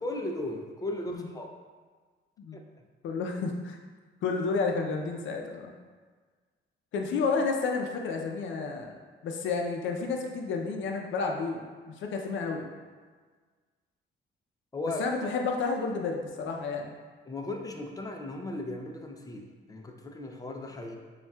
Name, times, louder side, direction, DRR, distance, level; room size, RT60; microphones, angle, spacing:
voice 1, 0.0-1.5 2.5-2.8 14.7-15.1 17.2-21.0, left 2 dB, 20° left, 3 dB, 0.5 m, -36 dB
voice 2, 3.0-3.8 4.2-5.7 6.9-9.0 9.2-12.6 15.0-17.0, left 4 dB, 75° left, 2 dB, 0.6 m, -31 dB
7.0 x 2.4 x 2.3 m, 1.5 s
cardioid pair, 90°, 20 cm